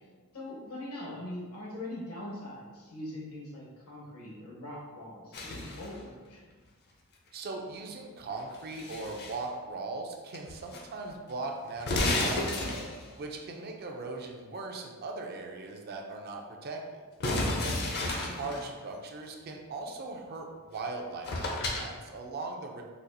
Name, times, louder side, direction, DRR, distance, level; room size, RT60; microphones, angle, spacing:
voice 1, 0.3-6.5 18.0-18.6, left 1 dB, 80° left, -4 dB, 1.0 m, -42 dB
sound 1, 5.3-6.0 8.4-9.4 10.3-10.8 11.1-11.2 11.8-13.2 17.2-18.7 20.8-20.9 21.2-21.9, left 2 dB, 45° left, 0.5 m, -32 dB
voice 2, 7.3-12.9 13.2-17.0 17.6-22.8, right 3 dB, 45° right, 2 dB, 0.4 m, -39 dB
4.1 x 2.3 x 2.6 m, 1.4 s
head